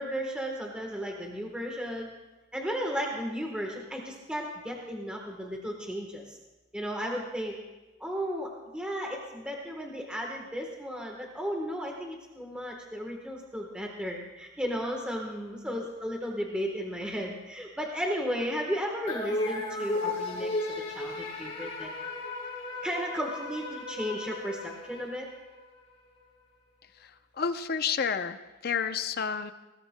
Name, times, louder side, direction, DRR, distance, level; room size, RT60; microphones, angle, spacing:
voice 1, 0.0-2.1 2.5-6.4 6.7-7.6 8.0-21.9 22.8-25.3, equal, 5° right, 0 dB, 1.2 m, -34 dB
sound 1, 19.1-25.6, left 2 dB, 35° left, 3.5 m, -35 dB
voice 2, 27.0-29.5, left 6 dB, 50° left, 10 dB, 0.6 m, -30 dB
20.0 x 17.0 x 2.2 m, 1.1 s
head